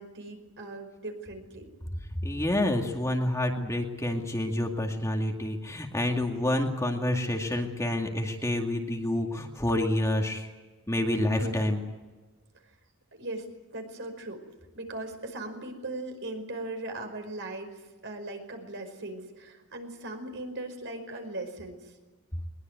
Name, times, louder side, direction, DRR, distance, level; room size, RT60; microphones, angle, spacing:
voice 1, 0.0-1.7 11.4-11.6 13.2-13.5 13.7-14.4 14.7-17.7 18.0-21.9, right 2 dB, 55° right, 5 dB, 5.2 m, -38 dB
voice 2, 2.2-10.5 10.9-11.8, left 1 dB, 15° left, 2 dB, 2.2 m, -28 dB
21.5 x 21.5 x 9.4 m, 1.2 s
head